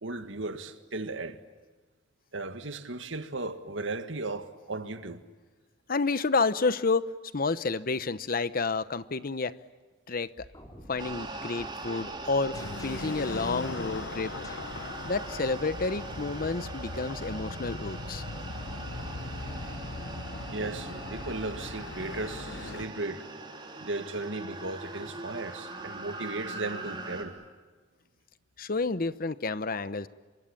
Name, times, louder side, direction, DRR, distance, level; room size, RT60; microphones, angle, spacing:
voice 1, 0.0-1.4 2.3-5.2 18.7-19.0 20.5-23.3 23.8-27.4, right 2 dB, 90° right, 1.8 m, -36 dB
voice 2, 5.9-9.5 10.1-10.5 10.9-12.6 12.8-14.3 15.0-18.2 28.6-30.1, left 3 dB, 50° left, 0.9 m, -30 dB
sound 1, 10.4-16.6, left 1 dB, 20° left, 3.8 m, -49 dB
sound 2, 11.0-27.2, right 2 dB, 25° right, 3.5 m, -41 dB
sound 3, 12.5-22.9, left 2 dB, 75° left, 1.1 m, -39 dB
28.0 x 24.5 x 8.7 m
head